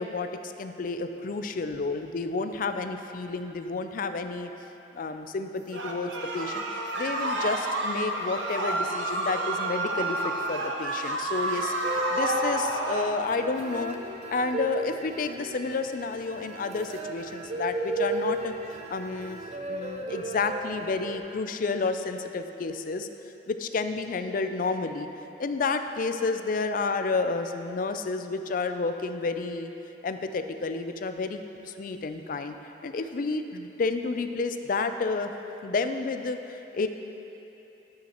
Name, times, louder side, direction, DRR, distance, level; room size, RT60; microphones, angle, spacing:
voice 1, 0.0-4.5 4.9-6.6 7.0-11.7 12.1-14.0 14.3-19.4 19.7-23.1 23.5-25.1 25.4-29.7 30.0-32.5 32.8-35.3 35.6-36.9, left 4 dB, 50° left, 8 dB, 0.4 m, -30 dB
sound 1, 5.7-13.1, right 2 dB, 90° right, 0.9 m, -30 dB
sound 2, 11.8-21.2, right 1 dB, 40° right, 0.6 m, -35 dB
11.5 x 8.8 x 3.0 m, 3.0 s
head